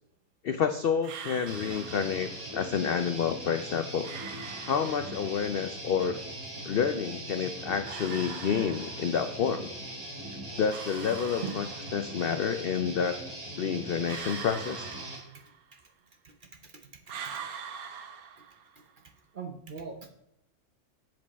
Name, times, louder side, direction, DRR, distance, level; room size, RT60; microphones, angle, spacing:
voice 1, 0.4-4.1 4.7-6.2 6.6-9.7 10.6-11.6 11.9-13.2 13.6-14.9, left 7 dB, 80° left, 9 dB, 0.5 m, -29 dB
sound 1, 1.0-2.5 4.0-5.5 7.9-9.4 10.7-12.2 14.1-15.8 17.1-18.9, right 7 dB, 75° right, 1.3 m, -43 dB
Guitar, 1.5-15.2, right 1 dB, 25° right, 2.0 m, -40 dB
voice 2, 16.1-17.4 19.0-19.1 19.3-20.1, right 5 dB, 45° right, 5 dB, 0.8 m, -42 dB
7.8 x 7.6 x 4.1 m, 0.80 s
omnidirectional pair, 1.6 m